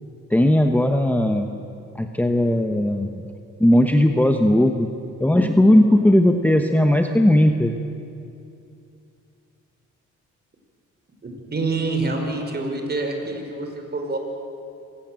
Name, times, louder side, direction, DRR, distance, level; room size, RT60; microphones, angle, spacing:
voice 1, 0.3-1.5 1.9-3.3 3.6-4.9 5.2-7.7, left 1 dB, 5° left, 5 dB, 1.2 m, -17 dB
voice 2, 11.2-14.2, right 3 dB, 35° right, 3 dB, 5.3 m, -26 dB
25.5 x 18.5 x 7.8 m, 2.6 s
cardioid pair, 90°, 30 cm